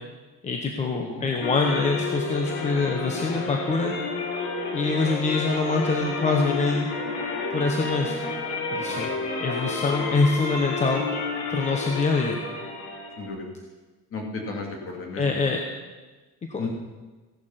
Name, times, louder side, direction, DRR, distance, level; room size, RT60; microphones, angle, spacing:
voice 1, 0.4-3.9 4.7-6.9 7.5-8.2 8.7-9.1 9.4-11.0 11.5-12.4 15.2-15.6 16.5-16.7, left 3 dB, 20° left, 2 dB, 1.0 m, -25 dB
sound 1, 1.4-13.3, left 3 dB, 90° left, 3.7 m, -30 dB
voice 2, 8.8-9.2 13.2-13.5 14.1-15.4 16.6-16.7, left 3 dB, 45° left, 1 dB, 2.9 m, -34 dB
16.0 x 11.5 x 5.8 m, 1.3 s
cardioid pair, 180°, 31 cm